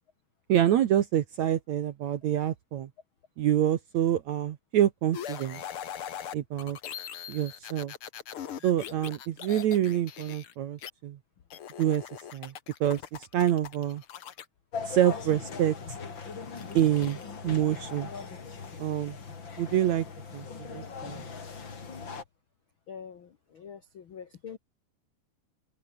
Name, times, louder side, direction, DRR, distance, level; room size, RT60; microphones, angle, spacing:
voice 1, 0.5-2.9 3.4-5.6 6.3-6.8 7.3-7.9 8.6-11.2 11.8-12.0 12.3-12.5 12.8-14.0 14.9-15.8 16.7-17.2 17.4-18.1 18.8-19.2 19.6-20.1 20.3-21.2, right 11 dB, 65° right, 1.8 m, -26 dB
sound 1, 5.1-10.9 11.5-14.5 16.6-17.2, left 9 dB, 60° left, 1.5 m, -41 dB
sound 2, 14.7-22.2, left 5 dB, 30° left, 3.1 m, -40 dB
voice 2, 22.9-24.6, left 7 dB, 80° left, 1.1 m, -44 dB
open air
omnidirectional pair, 4.6 m